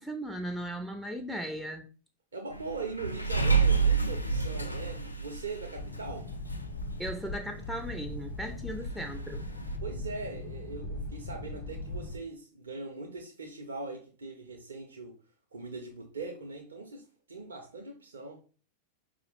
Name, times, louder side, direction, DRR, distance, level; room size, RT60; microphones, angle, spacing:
voice 1, 0.0-1.9 7.0-9.4, right 1 dB, ahead, 0.3 m, -37 dB
voice 2, 2.3-6.3 9.8-15.2 15.5-18.4, right 3 dB, 70° right, 0.5 m, -41 dB
sound 1, 2.5-7.2 7.6-7.7 7.9-8.2 8.5-8.6 9.4-9.8, right 5 dB, 85° left, 0.3 m, -29 dB
sound 2, 5.8-12.2, left 2 dB, 50° left, 0.8 m, -39 dB
4.7 x 2.0 x 3.1 m
figure-of-eight pair, 90°, 0 cm